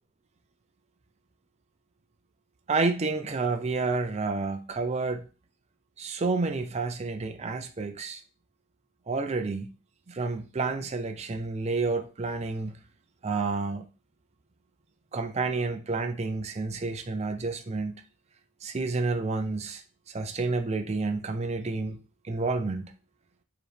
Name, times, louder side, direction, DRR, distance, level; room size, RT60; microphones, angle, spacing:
voice 1, 2.7-5.3 6.0-8.2 9.1-9.7 10.1-12.8 13.2-13.8 15.1-18.0 18.6-22.0 22.2-22.9, right 3 dB, 30° right, 6 dB, 0.4 m, -30 dB
4.9 x 3.1 x 3.3 m, 0.34 s
head